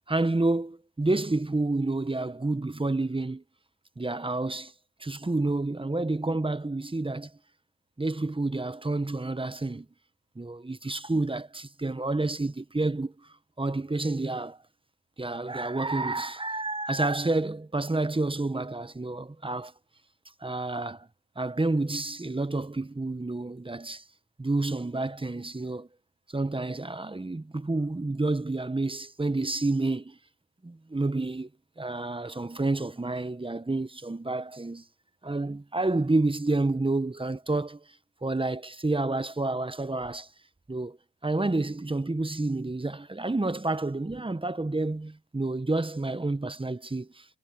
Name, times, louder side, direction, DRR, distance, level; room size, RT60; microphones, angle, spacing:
voice 1, 0.1-3.4 4.0-4.7 5.0-7.3 8.0-9.9 10.3-13.3 13.6-14.6 15.2-19.7 20.4-21.1 21.4-24.0 24.4-25.9 26.3-30.2 30.6-31.5 31.8-34.8 35.2-37.8 38.2-40.3 40.7-41.0 41.2-47.3, right 2 dB, 20° right, 1.2 m, -29 dB
supercardioid pair, 45°, 29 cm